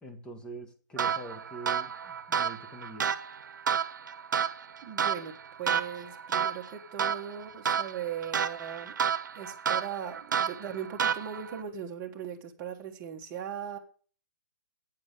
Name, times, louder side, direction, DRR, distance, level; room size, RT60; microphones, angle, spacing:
voice 1, 0.0-3.2, right 2 dB, 10° left, 5 dB, 1.4 m, -44 dB
sound 1, 1.0-11.6, right 7 dB, 80° right, 0.8 m, -31 dB
voice 2, 4.8-8.9 9.3-13.8, right 8 dB, 25° right, 1 dB, 1.5 m, -39 dB
8.8 x 7.5 x 6.7 m, 0.42 s
hypercardioid pair, 160°, 10 cm